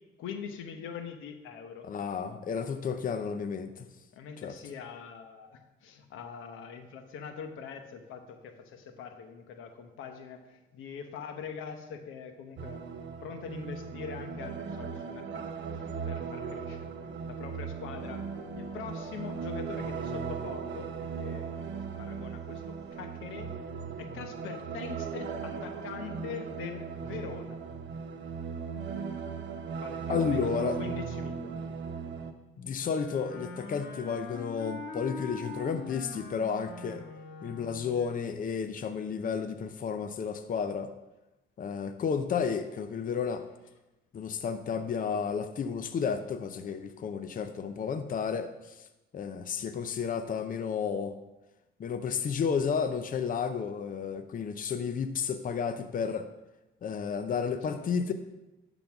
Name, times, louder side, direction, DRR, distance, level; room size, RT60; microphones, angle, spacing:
voice 1, 0.2-1.9 2.9-3.0 4.1-12.8 13.2-16.9 17.3-18.2 18.5-21.6 22.0-23.5 24.0-27.7 29.7-31.7 57.7-58.1, left 7 dB, 90° left, 7 dB, 0.9 m, -43 dB
voice 2, 1.8-3.8 4.4-4.5 30.1-30.8 32.6-37.0 37.4-40.9 41.6-43.4 44.1-48.8 49.1-51.1 51.8-56.3 56.8-58.1, left 6 dB, 45° left, 9 dB, 0.6 m, -32 dB
sound 1, 12.6-32.3, right 6 dB, 65° right, 0.9 m, -38 dB
sound 2, 17.7-23.1, equal, ahead, 2.7 m, -51 dB
Wind instrument woodwind instrument, 32.8-38.1, left 3 dB, 65° left, 1.5 m, -42 dB
10.5 x 4.0 x 5.9 m, 1.0 s
cardioid pair, 90°, 20 cm